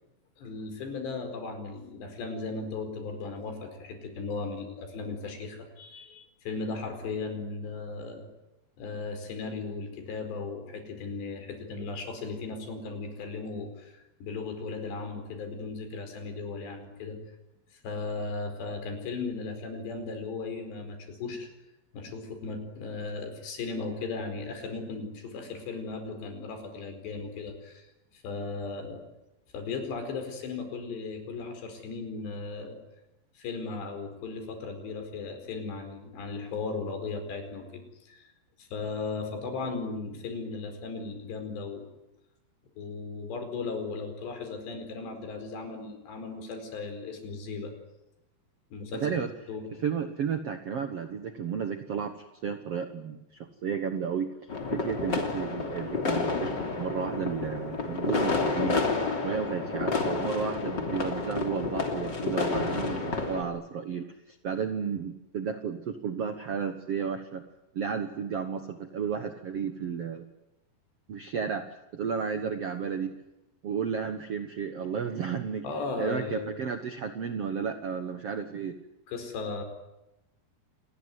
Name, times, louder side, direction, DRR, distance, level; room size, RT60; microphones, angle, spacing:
voice 1, 0.4-8.3 8.8-17.2 17.8-21.5 21.9-27.9 28.1-29.0 29.5-32.8 33.4-38.2 38.6-41.9 42.8-47.7 48.7-49.2 49.5-49.6 75.6-76.5 79.1-79.6, left 4 dB, 85° left, 7 dB, 6.8 m, -36 dB
voice 2, 48.9-49.3 49.8-54.3 54.7-58.8 59.2-67.4 67.7-70.2 71.1-73.2 73.6-75.6 76.0-78.8, right 6 dB, 70° right, 8 dB, 1.4 m, -33 dB
sound 1, 54.5-63.4, left 4 dB, 30° left, 3.2 m, -30 dB
28.0 x 20.0 x 9.7 m, 0.92 s
omnidirectional pair, 4.8 m